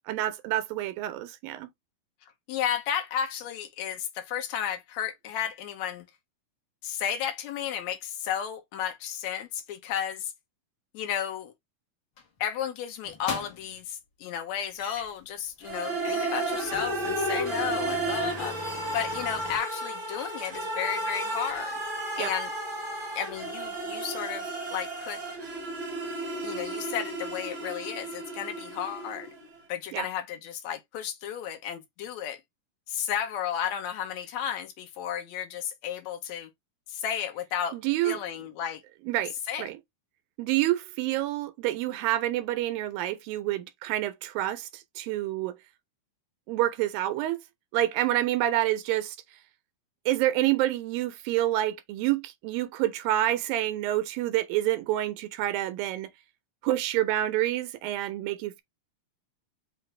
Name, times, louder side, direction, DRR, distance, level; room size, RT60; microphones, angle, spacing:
voice 1, 0.1-1.7 22.2-22.3 29.9-30.1 37.7-38.2 39.1-39.3 39.6-39.8 40.4-45.6 46.5-47.4 47.7-49.2 50.1-56.1 56.6-58.6, right 14 dB, 85° right, 2.5 m, -28 dB
voice 2, 2.5-6.0 6.8-10.3 10.9-11.5 12.4-21.8 22.2-22.5 23.2-25.2 26.4-29.3 29.7-32.4 32.9-36.5 36.9-37.8 38.0-38.8 39.5-39.7, left 9 dB, 75° left, 1.7 m, -33 dB
sound 1, 12.2-12.4 13.0-13.8 14.8-15.2 15.7-15.8 16.0-19.6, left 5 dB, 60° left, 1.3 m, -41 dB
sound 2, 15.6-29.5, right 2 dB, 55° right, 0.7 m, -33 dB
6.0 x 2.5 x 3.1 m
omnidirectional pair, 4.0 m